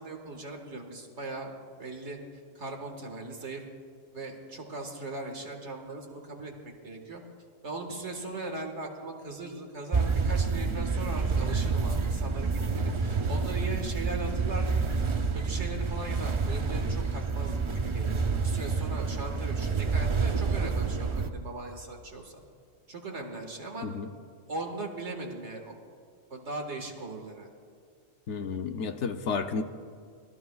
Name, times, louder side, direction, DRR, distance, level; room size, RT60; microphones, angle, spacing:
voice 1, 0.0-1.5 1.8-2.2 2.6-3.6 4.1-6.5 6.8-7.2 7.6-14.8 15.3-22.4 22.9-23.9 24.5-25.7 26.3-27.5, right 2 dB, 60° right, 3 dB, 1.9 m, -39 dB
sound 1, 9.9-21.3, right 4 dB, 45° right, 0.4 m, -28 dB
voice 2, 28.3-29.6, left 5 dB, 65° left, 7 dB, 1.0 m, -31 dB
24.5 x 17.5 x 2.3 m, 2.1 s
omnidirectional pair, 1.4 m